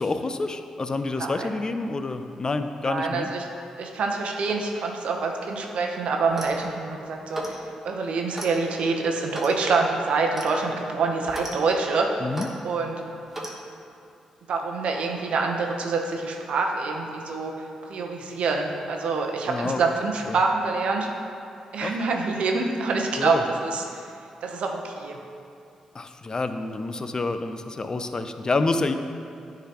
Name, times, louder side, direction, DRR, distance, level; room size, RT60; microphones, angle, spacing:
voice 1, 0.0-3.3 12.2-12.5 19.5-19.8 20.3-20.4 21.8-22.0 23.2-23.4 25.9-28.9, left 3 dB, 35° left, 8 dB, 0.4 m, -28 dB
voice 2, 1.2-1.5 2.9-3.4 3.8-7.6 7.8-12.2 12.6-13.0 14.5-17.5 17.9-21.1 21.7-24.0 24.4-25.2, right 4 dB, 70° right, 2 dB, 0.7 m, -26 dB
Clock, 6.2-6.6 7.3-7.6 8.3-8.5 9.3-9.6 10.3-10.5 11.3-11.6 12.3-12.5 13.3-13.6, right 1 dB, 15° right, 1.1 m, -35 dB
9.8 x 3.9 x 2.9 m, 2.6 s
supercardioid pair, 55°, 2 cm